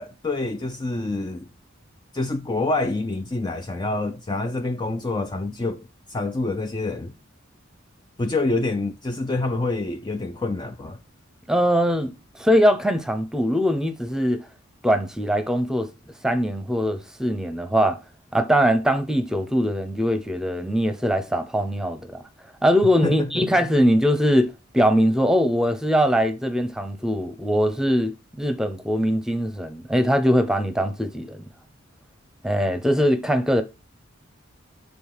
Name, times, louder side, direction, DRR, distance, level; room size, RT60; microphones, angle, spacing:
voice 1, 0.0-1.5 2.1-7.1 8.2-11.0 23.0-23.5, left 2 dB, 20° left, 0.5 m, -27 dB
voice 2, 11.5-12.1 12.4-14.5 14.8-15.9 16.2-18.0 18.3-22.2 22.6-28.1 28.4-31.4 32.4-33.6, equal, 5° right, 0.9 m, -21 dB
6.9 x 3.8 x 5.7 m
head